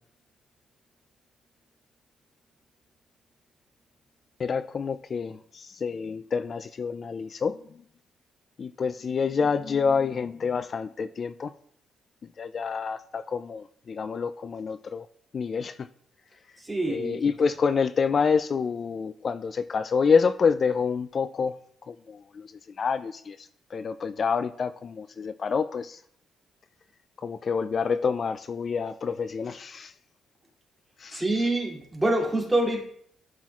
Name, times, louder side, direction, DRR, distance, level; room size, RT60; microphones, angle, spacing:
voice 1, 4.4-7.8 8.6-11.5 12.4-15.1 15.3-15.9 16.9-21.6 21.9-26.0 27.2-29.9 31.0-31.2, left 5 dB, 45° left, 12 dB, 0.3 m, -27 dB
voice 2, 16.6-17.2 31.1-32.9, right 1 dB, 10° right, -2 dB, 2.7 m, -26 dB
12.0 x 6.0 x 2.4 m, 0.66 s
cardioid pair, 90°, 0 cm